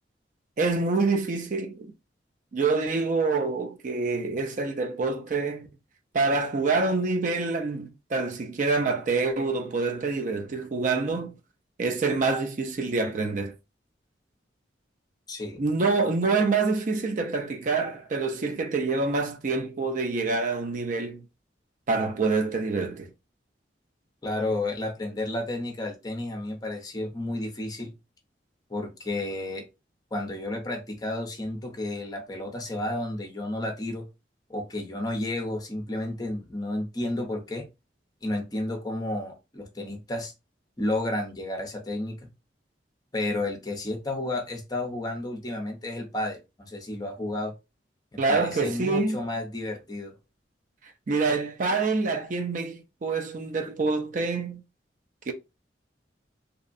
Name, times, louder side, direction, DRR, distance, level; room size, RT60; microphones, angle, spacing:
voice 1, 0.6-1.9 2.5-5.7 6.1-11.3 11.8-13.5 15.6-21.2 21.9-23.1 48.2-49.2 51.1-54.6 55.3-55.4, right 3 dB, 45° right, 0.4 m, -26 dB
voice 2, 15.3-15.6 24.2-27.9 28.7-29.6 30.1-34.1 34.5-37.7 38.2-40.3 40.8-42.3 43.1-47.5 48.1-50.1, left 1 dB, 20° left, 0.6 m, -31 dB
2.6 x 2.0 x 2.5 m
head